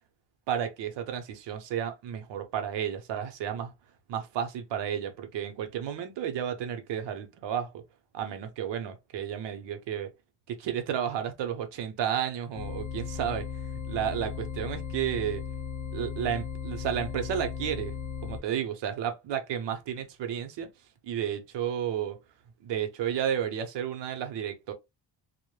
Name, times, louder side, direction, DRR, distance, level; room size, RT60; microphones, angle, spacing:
voice 1, 0.5-3.7 4.1-7.8 8.1-10.1 10.5-13.5 13.9-15.4 15.9-17.9 18.2-20.7 21.0-22.2 22.6-24.7, right 9 dB, 80° right, 0.7 m, -32 dB
sound 1, 12.5-18.4, left 7 dB, 40° left, 0.6 m, -36 dB
2.1 x 2.1 x 3.0 m
cardioid pair, 145°, 42 cm